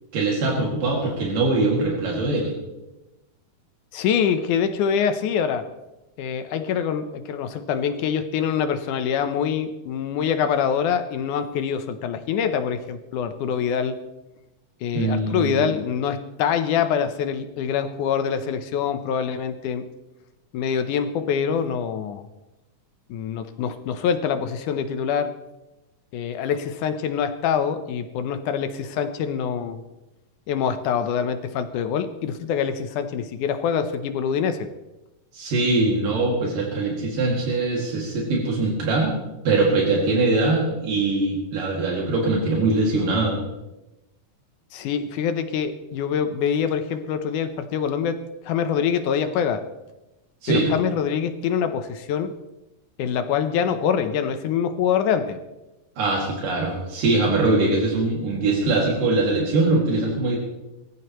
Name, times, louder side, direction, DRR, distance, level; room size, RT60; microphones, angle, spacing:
voice 1, 0.1-2.5 14.9-15.6 35.3-39.1 39.5-43.4 50.4-50.7 56.0-60.4, right 2 dB, 80° right, -2 dB, 3.9 m, -22 dB
voice 2, 3.9-5.7 6.2-14.0 14.8-19.9 20.5-22.3 23.1-25.3 26.1-29.8 30.5-34.7 44.7-49.6 50.5-52.3 53.0-55.4, left 7 dB, 75° left, 9 dB, 2.2 m, -25 dB
22.0 x 14.0 x 3.1 m, 1.0 s
omnidirectional pair, 3.8 m